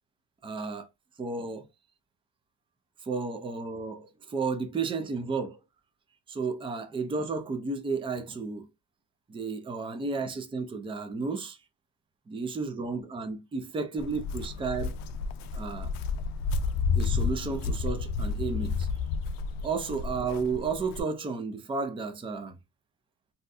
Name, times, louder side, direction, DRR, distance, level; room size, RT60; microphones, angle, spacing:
voice 1, 0.4-0.9 1.2-1.6 3.0-5.6 6.3-8.7 9.3-11.6 12.3-15.0 15.5-15.9 17.0-18.9 19.6-22.6, right 4 dB, 15° right, 0.4 m, -32 dB
Walk footsteps, 14.0-21.0, left 4 dB, 70° left, 0.5 m, -31 dB
2.7 x 2.2 x 3.8 m
cardioid pair, 135°, 36 cm